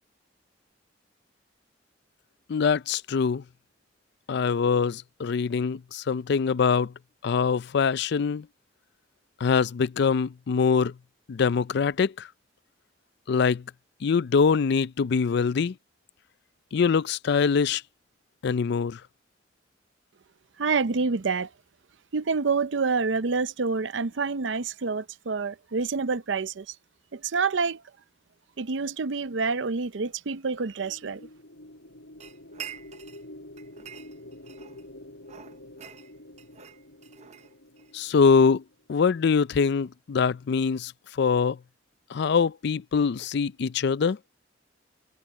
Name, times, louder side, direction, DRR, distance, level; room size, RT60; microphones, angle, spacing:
voice 1, 2.5-3.4 4.3-6.9 7.2-8.5 9.4-10.9 11.3-12.3 13.3-13.6 14.0-15.7 16.7-17.8 18.4-19.0 37.9-38.6 38.9-40.9 41.2-41.6 42.1-44.2, left 5 dB, 65° left, 0.4 m, -23 dB
voice 2, 20.6-21.5 22.1-26.7 27.1-27.8 28.6-31.2, right 4 dB, 75° right, 0.6 m, -27 dB
sound 1, 30.6-39.0, left 1 dB, 80° left, 6.7 m, -48 dB
sound 2, 32.2-33.3 33.6-34.9 35.2-37.9, right 8 dB, 40° right, 0.7 m, -45 dB
head